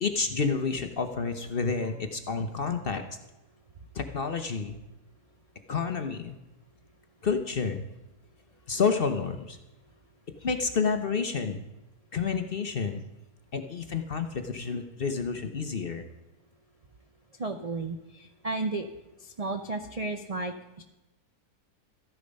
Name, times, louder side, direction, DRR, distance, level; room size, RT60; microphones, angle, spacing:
voice 1, 0.0-3.0 3.9-4.8 5.7-6.3 7.2-7.8 8.7-9.6 10.4-11.6 12.1-13.0 13.5-16.0, left 5 dB, 45° left, 8 dB, 0.8 m, -29 dB
voice 2, 17.4-18.9 19.2-20.8, right 3 dB, 55° right, 6 dB, 0.4 m, -33 dB
14.0 x 10.0 x 5.3 m, 1.0 s
omnidirectional pair, 1.7 m